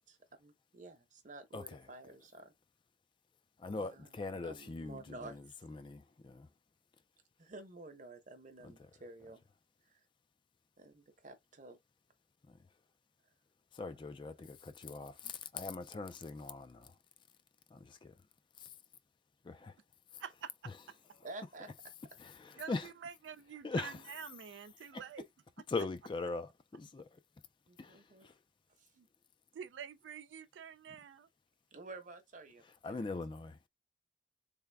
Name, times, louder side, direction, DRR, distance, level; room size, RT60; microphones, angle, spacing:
voice 1, 0.0-2.5 3.8-4.1 4.4-5.4 7.4-9.4 9.9-10.0 10.8-11.8 13.8-13.9 21.2-21.7 22.5-22.6 27.7-28.3 28.8-28.9 31.7-33.0, right 2 dB, 45° right, 0.8 m, -51 dB
voice 2, 1.5-1.9 3.6-6.5 8.6-8.9 12.5-12.6 13.7-17.0 17.7-18.1 18.6-18.7 19.4-19.8 20.1-20.2 20.7-20.8 22.2-22.9 23.6-24.0 24.9-25.0 25.7-27.2 27.8-28.4 32.8-33.6, left 3 dB, 25° left, 0.3 m, -41 dB
voice 3, 20.2-20.7 22.6-25.3 29.0-29.1 29.5-31.3, right 7 dB, 90° right, 0.3 m, -47 dB
3.5 x 2.1 x 3.4 m
head